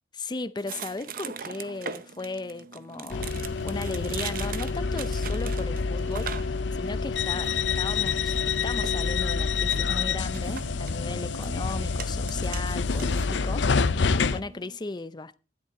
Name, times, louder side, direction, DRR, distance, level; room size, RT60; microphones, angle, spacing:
voice 1, 0.1-3.3 3.6-13.8 14.1-15.4, left 3 dB, 25° left, 0.5 m, -36 dB
sound 1, 0.6-14.8, right 7 dB, 50° right, 0.7 m, -42 dB
sound 2, 3.1-14.4, left 5 dB, 80° left, 0.6 m, -27 dB
13.5 x 11.0 x 3.7 m
head